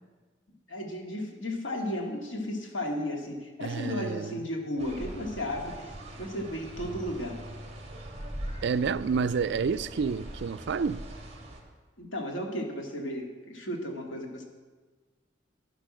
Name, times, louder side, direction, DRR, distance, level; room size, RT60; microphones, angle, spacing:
voice 1, 0.7-5.9 6.2-7.4 12.0-14.5, left 1 dB, 80° left, 2.2 m, -34 dB
voice 2, 3.6-4.4 8.6-11.0, right 5 dB, 65° right, 0.4 m, -29 dB
sound 1, 4.8-11.6, right 1 dB, 35° right, 2.1 m, -42 dB
10.5 x 10.0 x 6.3 m
head